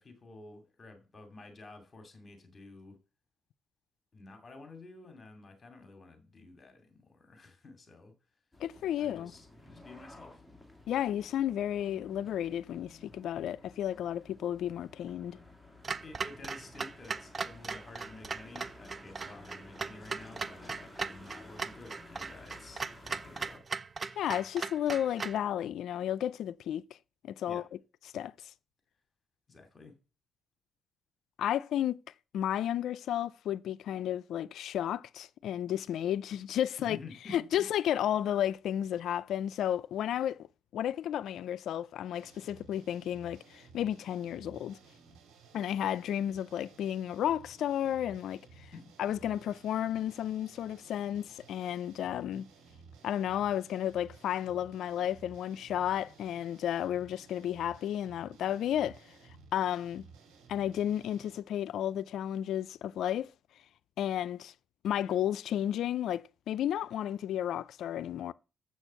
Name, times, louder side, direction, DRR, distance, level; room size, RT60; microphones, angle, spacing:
voice 1, 0.0-3.0 4.1-8.1 9.0-10.4 16.0-23.6 27.5-27.7 29.5-30.0 36.8-37.7 48.6-48.9, left 3 dB, 35° left, 2.6 m, -51 dB
sound 1, 8.5-23.6, left 2 dB, ahead, 2.0 m, -54 dB
voice 2, 8.6-9.3 10.9-15.4 24.2-26.8 27.4-27.6 28.1-28.3 31.4-32.0 32.3-37.0 37.3-40.5 40.7-44.8 45.5-48.7 49.0-52.4 53.0-59.0 59.5-60.0 60.5-63.3 64.0-64.5 64.8-68.3, left 11 dB, 75° left, 0.4 m, -32 dB
Clock, 15.8-25.4, right 4 dB, 30° right, 0.6 m, -38 dB
sound 2, 42.1-61.3, right 4 dB, 90° right, 2.3 m, -56 dB
7.5 x 6.3 x 6.8 m
cardioid pair, 90°, 0 cm